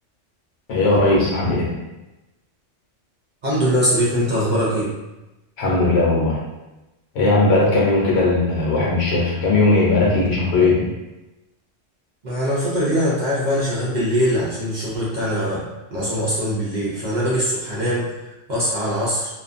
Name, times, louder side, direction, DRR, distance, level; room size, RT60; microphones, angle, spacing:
voice 1, 0.7-1.7 5.6-6.4 7.1-10.9, left 2 dB, 65° left, -4 dB, 1.0 m, -18 dB
voice 2, 3.4-4.9 12.2-15.6 15.9-18.1 18.5-19.3, equal, 50° right, -8 dB, 0.6 m, -22 dB
2.4 x 2.3 x 2.5 m, 1.0 s
omnidirectional pair, 1.3 m